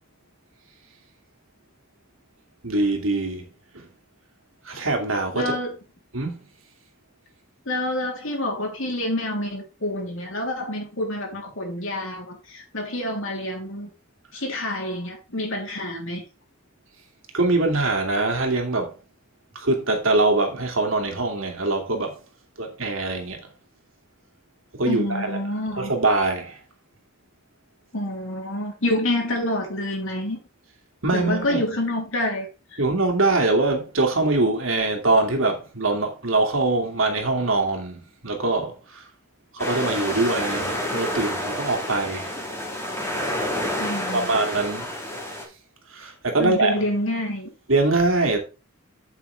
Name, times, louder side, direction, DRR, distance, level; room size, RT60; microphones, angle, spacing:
voice 1, 2.6-3.5 3.7-3.9 4.7-5.5 6.1-6.4 17.3-18.9 19.5-22.2 22.6-23.4 24.8-25.4 25.8-26.6 31.0-31.6 32.8-39.0 39.5-42.4 44.1-44.9 45.9-46.7 47.7-48.4, right 2 dB, 85° right, 2.5 m, -23 dB
voice 2, 5.3-5.7 7.6-13.9 14.3-16.2 24.9-25.9 27.9-30.4 31.1-32.8 43.8-44.3 46.4-47.5, left 1 dB, 70° left, 3.4 m, -27 dB
sound 1, 39.6-45.4, left 1 dB, 15° left, 2.6 m, -29 dB
8.2 x 8.2 x 3.4 m
head